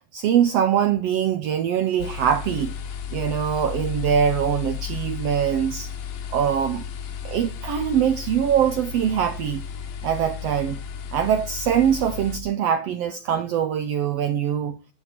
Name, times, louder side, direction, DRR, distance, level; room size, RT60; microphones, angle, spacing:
voice 1, 0.1-2.7 3.1-5.9 6.3-6.8 7.2-9.7 10.0-10.8 11.1-14.8, right 9 dB, 80° right, 1.4 m, -23 dB
sound 1, 2.0-12.4, left 8 dB, 75° left, 2.7 m, -34 dB
11.5 x 8.0 x 4.2 m
omnidirectional pair, 3.8 m